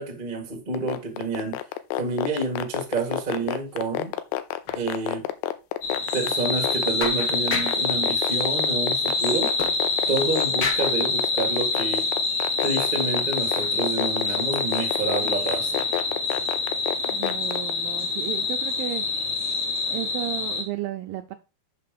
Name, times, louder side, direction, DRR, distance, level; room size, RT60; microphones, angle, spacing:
voice 1, 0.0-1.6 2.0-4.1 4.7-5.3 6.1-9.5 10.1-12.1 12.6-15.8, right 3 dB, 50° right, 0.5 m, -29 dB
sound 1, 0.7-17.7, left 13 dB, 90° left, 2.7 m, -28 dB
sound 2, 3.4-3.8 4.0-4.1 4.6-4.8 5.2-5.4 5.8-5.9 6.6-6.7 7.0-7.9 9.6-10.2 10.6-11.0 11.7-11.9 12.4-12.5 13.3-13.8 14.1-15.3 15.7-16.0, left 5 dB, 70° left, 1.4 m, -34 dB
sound 3, 5.8-20.6, left 3 dB, 55° left, 2.7 m, -26 dB
voice 2, 17.1-19.1 19.9-21.3, right 14 dB, 80° right, 2.1 m, -33 dB
6.6 x 6.0 x 5.2 m
omnidirectional pair, 4.7 m